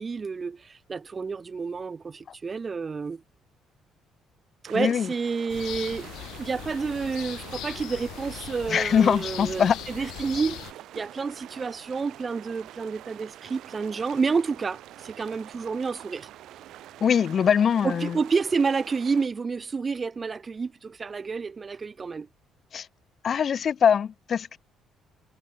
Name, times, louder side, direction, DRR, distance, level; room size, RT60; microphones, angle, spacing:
voice 1, 0.0-3.2 4.6-6.1 6.4-9.7 10.0-10.6 10.9-16.3 17.8-22.3, right 5 dB, 20° right, 5.6 m, -29 dB
sound 1, 4.6-19.3, right 13 dB, 65° right, 5.4 m, -46 dB
voice 2, 4.7-5.1 8.7-9.8 17.0-18.2 22.7-22.9 23.2-24.6, left 7 dB, 35° left, 0.5 m, -22 dB
sound 2, 5.5-10.7, left 15 dB, 75° left, 7.9 m, -40 dB
cardioid pair, 170°, 0 cm